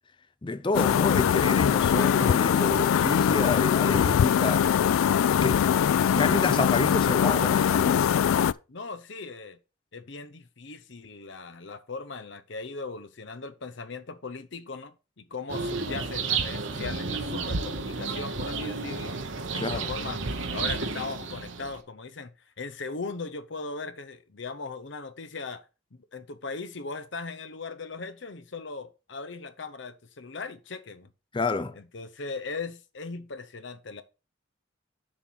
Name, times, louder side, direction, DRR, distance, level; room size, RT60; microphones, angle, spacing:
voice 1, 0.4-5.0 5.4-5.7 6.0-8.0 19.6-19.9 31.3-31.8, left 2 dB, 25° left, 0.5 m, -29 dB
sound 1, 0.7-8.5, left 8 dB, 90° left, 0.3 m, -22 dB
voice 2, 8.7-9.6 9.9-19.2 19.5-20.2 20.5-22.3 22.6-25.6 25.9-31.1 31.7-34.0, left 4 dB, 60° left, 0.8 m, -38 dB
sound 2, 15.5-21.8, right 4 dB, 70° right, 1.2 m, -31 dB
7.2 x 4.5 x 6.1 m
head